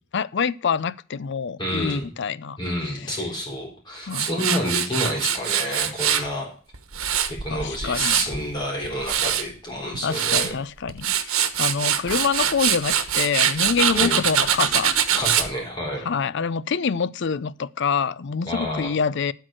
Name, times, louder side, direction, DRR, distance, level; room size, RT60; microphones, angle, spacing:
voice 1, 0.1-2.6 4.1-4.5 7.5-8.2 10.0-14.9 16.0-19.3, left 6 dB, 55° left, 0.5 m, -26 dB
voice 2, 1.6-2.1 2.6-6.5 7.3-10.6 13.9-14.2 15.1-16.1 18.5-18.9, left 1 dB, 20° left, 3.9 m, -29 dB
Tools, 4.1-6.3 6.7-8.4 8.8-9.4 9.9-10.5 10.9-15.5, right 9 dB, 85° right, 1.2 m, -23 dB
12.5 x 4.6 x 7.6 m
head